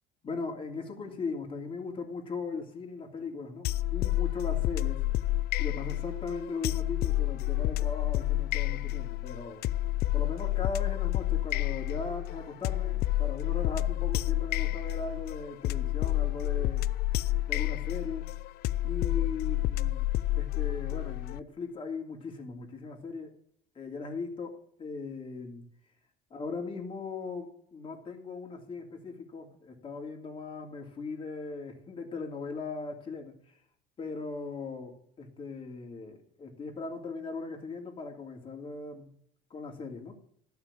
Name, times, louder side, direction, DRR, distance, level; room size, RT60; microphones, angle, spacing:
voice 1, 0.2-5.1 5.6-9.6 10.1-16.8 17.5-18.3 18.8-20.0 20.4-23.3 23.7-25.6 26.3-33.6 34.0-39.1 39.5-40.2, left 4 dB, 30° left, 1 dB, 2.9 m, -38 dB
sound 1, 3.6-21.4, left 15 dB, 60° left, 0.5 m, -29 dB
12.5 x 5.9 x 8.4 m, 0.64 s
cardioid pair, 130°, 18 cm